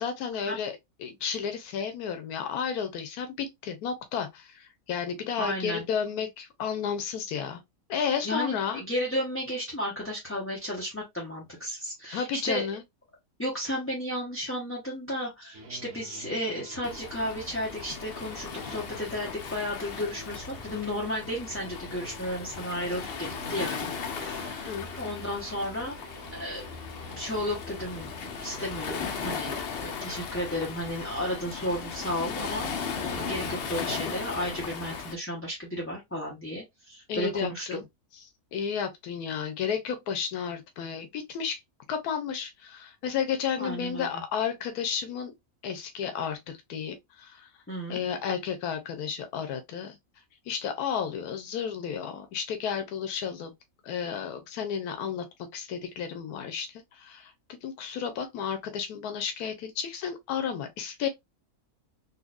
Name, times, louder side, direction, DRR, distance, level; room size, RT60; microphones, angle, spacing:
voice 1, 0.0-7.6 7.9-8.8 12.1-12.8 24.7-24.9 37.1-37.8 38.5-41.6 41.9-45.3 45.6-47.5 47.9-50.0 50.5-53.5 53.8-55.2 55.5-57.3 57.6-61.1, left 7 dB, 85° left, 1.1 m, -32 dB
voice 2, 5.4-5.8 8.2-12.7 13.4-26.0 26.3-37.7 43.6-44.2 47.7-48.0, equal, 10° left, 0.8 m, -33 dB
sound 1, 15.5-31.1, right 1 dB, 80° right, 1.4 m, -49 dB
Waves surf, 16.8-35.1, left 6 dB, 55° left, 0.7 m, -37 dB
4.1 x 2.5 x 2.4 m
omnidirectional pair, 1.6 m